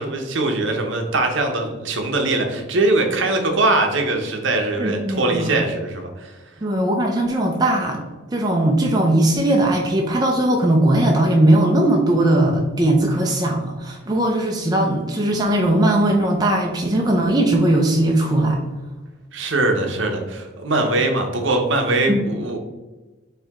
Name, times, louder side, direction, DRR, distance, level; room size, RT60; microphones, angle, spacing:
voice 1, 0.0-6.3 19.3-22.6, right 2 dB, 60° right, 3 dB, 0.8 m, -21 dB
voice 2, 4.8-5.5 6.6-8.0 8.3-18.6 22.1-22.2, right 1 dB, 20° right, 0 dB, 0.4 m, -19 dB
4.6 x 3.2 x 3.5 m, 1.2 s
head